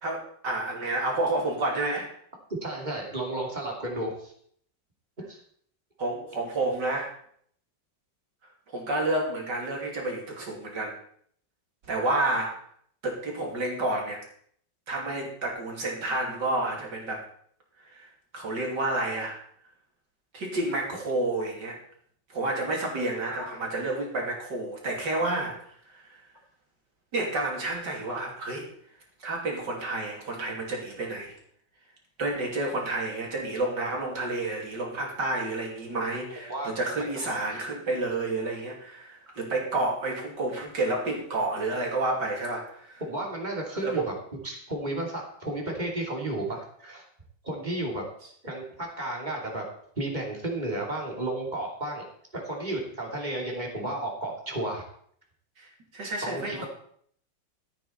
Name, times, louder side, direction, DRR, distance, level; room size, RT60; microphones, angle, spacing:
voice 1, 0.0-2.1 6.0-7.1 8.7-11.0 11.9-12.5 13.0-14.2 14.9-17.2 17.9-18.1 18.3-19.4 20.3-21.8 22.3-25.6 25.9-26.0 27.1-28.7 29.2-31.3 32.2-43.0 43.8-44.0 55.6-56.7, right 2 dB, 65° right, -1 dB, 3.5 m, -30 dB
voice 2, 2.6-4.3 5.3-5.4 23.3-23.6 36.5-36.7 37.5-37.6 39.3-39.4 43.0-44.1 44.4-47.0 47.4-48.0 48.4-49.6 50.0-52.0 52.3-54.8 56.2-56.7, right 1 dB, 25° right, -1 dB, 2.8 m, -33 dB
14.0 x 8.9 x 4.3 m, 0.62 s
omnidirectional pair, 2.0 m